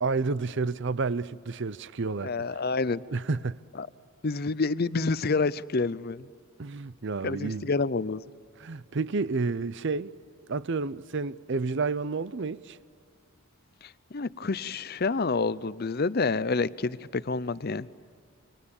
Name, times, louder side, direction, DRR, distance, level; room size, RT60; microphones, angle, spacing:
voice 1, 0.0-2.5 3.1-3.6 6.6-7.7 8.6-10.1 10.5-12.8, right 4 dB, 55° right, 0.6 m, -30 dB
voice 2, 2.2-3.0 3.8-3.9 4.2-6.3 7.2-8.2 13.8-17.9, left 3 dB, 45° left, 0.6 m, -28 dB
29.0 x 25.0 x 7.1 m
head